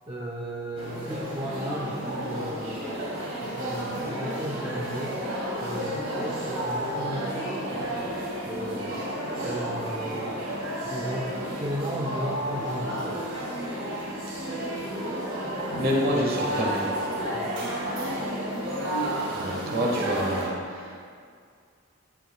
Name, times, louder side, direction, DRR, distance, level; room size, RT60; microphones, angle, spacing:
voice 1, 0.1-3.1 3.4-8.1 8.4-9.1 9.4-10.5 10.8-13.3 17.3-17.7, equal, 20° right, -3 dB, 0.8 m, -36 dB
sound 1, 0.8-20.5, right 1 dB, 85° right, 2.8 m, -31 dB
voice 2, 15.7-16.9 19.3-21.2, equal, 45° right, -1 dB, 1.4 m, -28 dB
14.5 x 10.0 x 2.3 m, 2.2 s
head